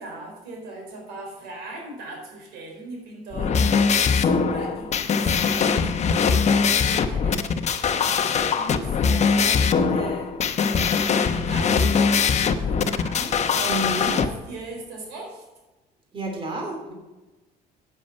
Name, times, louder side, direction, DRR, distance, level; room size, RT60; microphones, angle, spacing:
voice 1, 0.0-3.6 4.1-15.4, right 2 dB, 90° right, 0 dB, 4.6 m, -39 dB
sound 1, 3.3-14.3, left 5 dB, 40° left, 0.9 m, -21 dB
voice 2, 13.6-14.1 16.1-16.9, right 2 dB, 30° right, 1 dB, 3.1 m, -30 dB
9.4 x 9.2 x 5.5 m, 1.1 s
cardioid pair, 110°, 17 cm